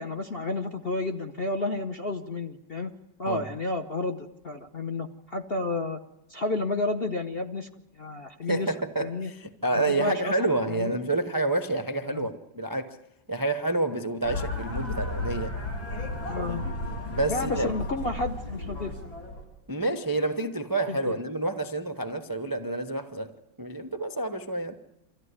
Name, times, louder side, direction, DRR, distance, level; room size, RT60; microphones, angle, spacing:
voice 1, 0.0-2.9 3.2-6.0 6.3-7.7 8.0-8.7 9.0-9.3 9.9-10.4 10.7-10.9 12.1-12.3 16.3-16.6 17.3-18.9 20.9-21.2, left 2 dB, 45° left, 0.7 m, -31 dB
voice 2, 8.4-13.0 13.3-15.6 16.5-16.6 17.1-17.7 19.7-23.3 23.6-24.8, right 2 dB, 30° right, 0.4 m, -29 dB
sound 1, 14.2-19.4, left 2 dB, 70° left, 4.5 m, -33 dB
25.0 x 14.5 x 9.6 m
omnidirectional pair, 2.2 m